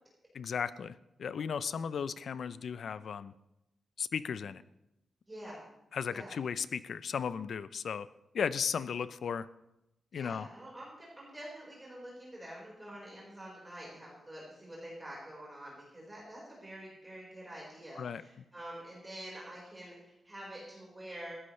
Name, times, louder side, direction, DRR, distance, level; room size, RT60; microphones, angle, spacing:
voice 1, 0.3-3.3 4.0-4.6 5.9-8.1 8.3-9.5 10.1-10.5 18.0-18.2, left 7 dB, 60° left, 15 dB, 0.5 m, -35 dB
voice 2, 5.3-5.6 6.1-6.4 10.1-21.3, right 1 dB, 15° right, -5 dB, 4.6 m, -47 dB
19.5 x 15.5 x 3.3 m, 0.88 s
wide cardioid pair, 150°, 0 cm